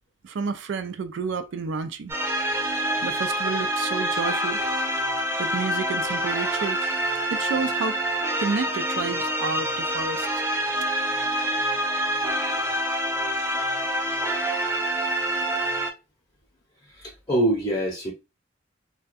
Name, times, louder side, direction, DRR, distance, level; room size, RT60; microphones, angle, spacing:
voice 1, 0.2-2.1 3.0-4.6 5.4-6.9 7.3-8.0 8.4-10.3, right 5 dB, 80° right, 0.4 m, -30 dB
sound 1, 2.1-15.9, right 1 dB, 15° right, 0.4 m, -26 dB
voice 2, 17.0-18.1, right 1 dB, 20° left, 0.7 m, -25 dB
2.3 x 2.2 x 2.5 m
head